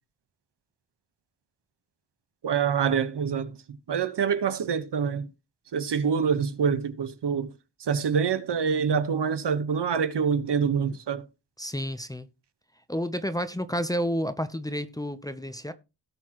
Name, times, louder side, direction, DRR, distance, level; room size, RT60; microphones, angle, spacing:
voice 1, 2.4-3.5 3.9-5.3 5.7-7.5 7.8-11.2, right 6 dB, 75° right, 1.3 m, -26 dB
voice 2, 11.6-12.3 12.9-15.7, equal, 10° left, 0.7 m, -30 dB
17.5 x 6.3 x 3.0 m
wide cardioid pair, 175°, 42 cm